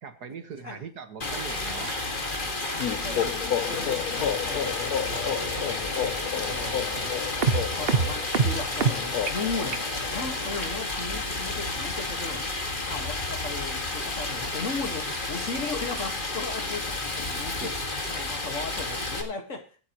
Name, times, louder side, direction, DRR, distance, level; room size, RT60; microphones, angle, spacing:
voice 1, 0.0-2.2 8.1-8.2 17.6-17.9, right 6 dB, 70° right, 2.0 m, -41 dB
Stream, 1.2-19.2, left 2 dB, 30° left, 2.0 m, -31 dB
sound 1, 1.9-2.0 2.3-2.4 2.8-3.0 3.3-3.4 3.7-3.8 4.2-4.3 4.6-4.8 5.1-5.2 5.6-5.7 6.0-6.1 6.5-6.6 7.0-7.1 7.4-8.9 9.3-9.4 9.7-9.8, right 5 dB, 40° right, 1.0 m, -26 dB
sound 2, 2.8-10.5, left 9 dB, 65° left, 1.2 m, -32 dB
voice 2, 2.9-7.2 7.7-12.5 12.9-17.8 18.1-19.8, left 4 dB, 45° left, 2.0 m, -37 dB
24.0 x 8.6 x 3.0 m
omnidirectional pair, 1.8 m